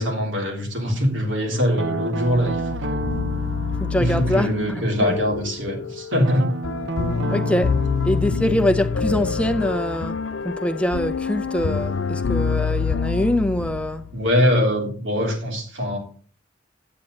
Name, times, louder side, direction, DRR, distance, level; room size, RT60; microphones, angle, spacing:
voice 1, 0.0-3.1 4.0-6.5 14.1-16.0, equal, 85° right, 3.4 m, -22 dB
Guitar, 1.8-5.6 6.2-11.0, right 3 dB, 65° right, 0.6 m, -32 dB
sound 1, 2.3-14.3, left 5 dB, 90° left, 0.5 m, -26 dB
voice 2, 3.8-5.2 7.3-7.7 8.0-10.2 10.4-14.0, left 1 dB, 5° left, 0.6 m, -24 dB
9.7 x 8.6 x 3.9 m
head